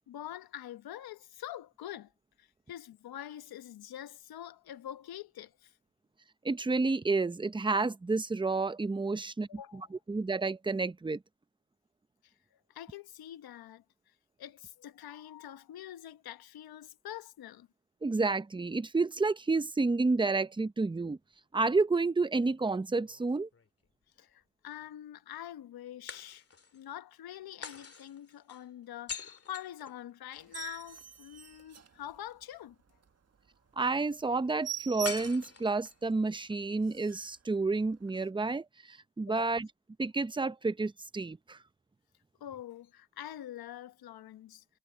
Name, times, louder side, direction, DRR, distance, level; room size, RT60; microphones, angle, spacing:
voice 1, 0.0-2.1 2.4-5.8 9.5-9.9 12.2-12.3 12.7-17.7 24.2-26.4 26.7-32.8 39.3-39.6 42.4-44.6, left 11 dB, 75° left, 1.1 m, -45 dB
voice 2, 6.4-9.5 10.1-11.2 18.0-21.2 21.5-23.5 33.8-39.7 40.0-41.6, right 3 dB, 15° right, 0.7 m, -30 dB
sound 1, 23.0-24.0 26.1-26.8 27.6-30.5 35.0-36.1, left 5 dB, 40° left, 2.4 m, -45 dB
sound 2, 30.4-32.5 32.9-33.1 33.5-33.6 33.9-34.0 34.2-35.6 36.1-36.2 36.5-36.6 36.8-37.3 38.1-38.2, right 9 dB, 40° right, 1.6 m, -44 dB
cardioid pair, 75°, 37 cm